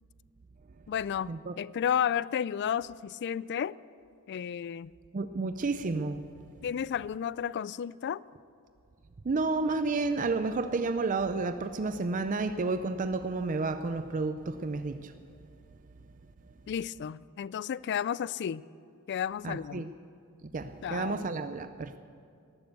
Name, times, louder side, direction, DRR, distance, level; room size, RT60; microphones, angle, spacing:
voice 1, 0.9-3.8 4.3-4.9 6.6-8.2 16.7-18.6 19.1-19.9 20.8-21.3, left 8 dB, 55° left, 0.3 m, -32 dB
voice 2, 5.1-6.3 9.2-15.1 19.4-19.9 20.5-22.0, right 3 dB, 40° right, 0.5 m, -31 dB
13.5 x 12.0 x 8.0 m
head